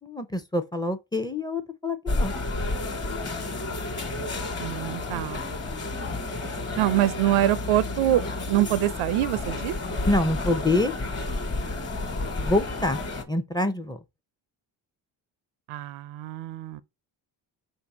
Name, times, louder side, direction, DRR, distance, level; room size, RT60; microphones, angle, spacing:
voice 1, 0.0-2.3 10.1-10.9 12.4-13.0 13.3-14.0, left 2 dB, 10° left, 0.5 m, -26 dB
sound 1, 2.1-13.2, left 2 dB, 30° left, 1.3 m, -31 dB
voice 2, 4.6-5.4 6.8-9.8 15.7-16.8, right 14 dB, 80° right, 0.6 m, -25 dB
3.9 x 2.7 x 4.7 m
supercardioid pair, 70°, 47 cm